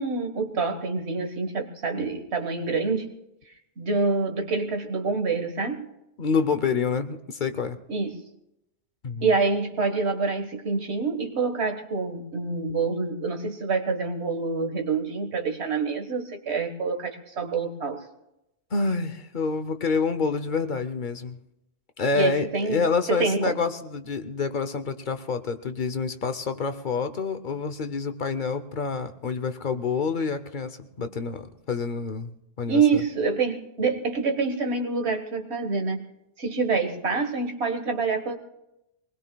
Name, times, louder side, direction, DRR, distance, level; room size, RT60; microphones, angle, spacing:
voice 1, 0.0-3.1 3.8-5.9 7.9-8.3 9.2-18.1 22.1-23.5 32.7-36.0 36.4-38.4, right 4 dB, 85° right, 5 dB, 1.7 m, -26 dB
voice 2, 6.2-7.8 9.0-9.3 18.7-21.4 22.0-33.0, left 5 dB, 50° left, 9 dB, 0.9 m, -28 dB
23.5 x 20.0 x 2.3 m, 0.87 s
omnidirectional pair, 1.1 m